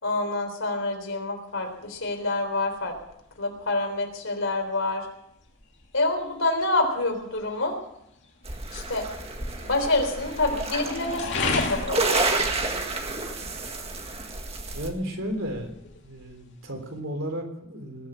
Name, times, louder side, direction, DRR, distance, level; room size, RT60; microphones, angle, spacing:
voice 1, 0.0-2.9 3.4-5.0 5.9-7.8 8.7-9.0 9.6-12.3, left 2 dB, 75° left, 3 dB, 3.9 m, -27 dB
sound 1, 1.5-17.0, left 3 dB, 60° left, 2.7 m, -38 dB
sound 2, 8.4-14.9, right 3 dB, 30° right, 1.8 m, -30 dB
voice 2, 13.3-13.7 14.7-15.7 16.0-18.1, equal, 75° right, 4 dB, 3.5 m, -34 dB
20.5 x 7.1 x 8.9 m, 0.79 s
head